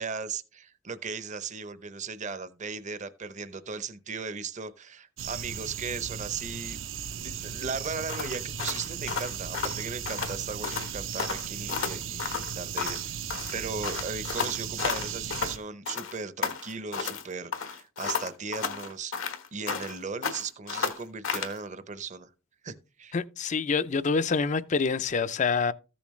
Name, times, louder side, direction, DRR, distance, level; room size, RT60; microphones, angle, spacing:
voice 1, 0.0-6.8 7.2-13.2 13.5-22.3 22.6-23.1, right 5 dB, 35° right, 0.7 m, -37 dB
sound 1, 5.2-15.6, right 8 dB, 75° right, 0.7 m, -36 dB
sound 2, 8.1-10.4 10.6-10.9 11.2-13.1 13.3-15.6 15.9-17.2 17.5-20.0 20.2-21.6, left 6 dB, 80° left, 1.4 m, -33 dB
voice 2, 23.1-25.7, left 5 dB, 35° left, 0.4 m, -26 dB
14.0 x 7.1 x 3.1 m
head